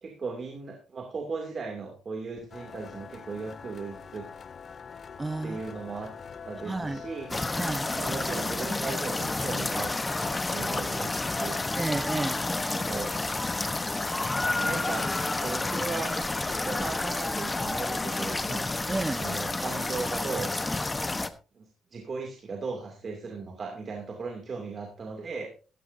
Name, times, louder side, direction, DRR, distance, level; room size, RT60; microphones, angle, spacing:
voice 1, 0.0-4.3 5.4-6.1 6.4-7.4 7.9-9.9 10.2-11.6 12.4-13.3 14.6-15.1 15.4-18.6 19.2-20.5 21.6-25.5, right 4 dB, 45° right, 2.5 m, -37 dB
sound 1, 2.5-14.1, left 6 dB, 45° left, 0.5 m, -45 dB
voice 2, 5.2-5.6 6.6-7.0 7.6-7.9 11.8-12.4 18.9-19.3, right 2 dB, 20° right, 0.9 m, -31 dB
sound 2, 7.3-21.3, left 2 dB, 20° left, 1.0 m, -30 dB
14.5 x 13.5 x 2.6 m
cardioid pair, 90°, 0 cm